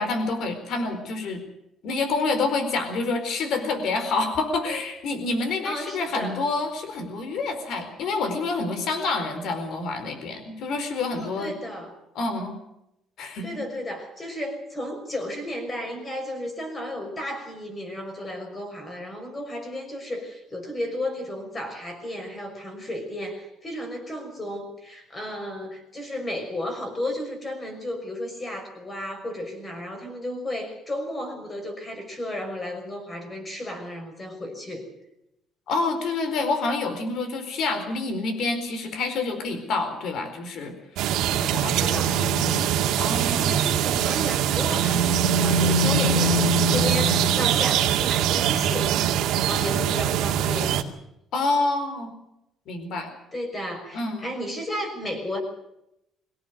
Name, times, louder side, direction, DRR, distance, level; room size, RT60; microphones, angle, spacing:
voice 1, 0.0-1.4 1.8-11.6 12.1-12.5 13.2-13.6 35.7-43.5 51.3-52.1 52.7-53.1 53.9-54.3, left 3 dB, 55° left, 8 dB, 4.4 m, -28 dB
voice 2, 5.6-6.4 11.2-11.9 13.4-34.9 41.7-42.1 43.4-48.9 49.4-50.8 53.3-55.4, left 1 dB, 20° left, 4 dB, 6.0 m, -33 dB
sound 1, 41.0-50.8, right 7 dB, 75° right, 2.3 m, -22 dB
24.0 x 17.5 x 6.5 m, 0.83 s
cardioid pair, 175°, 0 cm